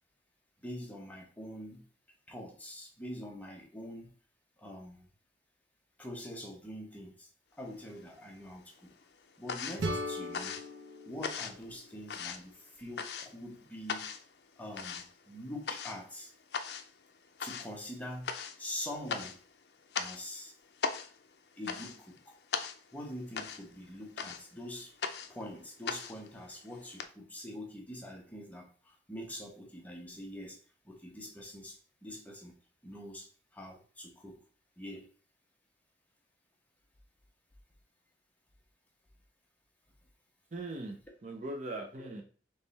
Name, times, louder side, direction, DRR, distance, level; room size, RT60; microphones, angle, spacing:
voice 1, 0.6-1.8 2.3-4.1 4.6-5.1 6.0-7.3 7.6-8.9 9.4-10.6 11.0-14.1 14.6-16.3 17.4-19.4 19.9-20.5 21.6-22.3 22.9-24.9 25.3-30.6 30.8-32.5 32.8-34.4 34.8-35.1 42.0-42.2, left 1 dB, 10° left, -1 dB, 0.9 m, -44 dB
sound 1, 7.7-8.5 8.8-27.0, left 6 dB, 65° left, 0.5 m, -40 dB
sound 2, 9.8-12.7, equal, 85° right, 0.7 m, -39 dB
voice 2, 40.5-42.2, right 2 dB, 40° right, 3 dB, 0.6 m, -40 dB
3.6 x 3.2 x 4.0 m, 0.40 s
head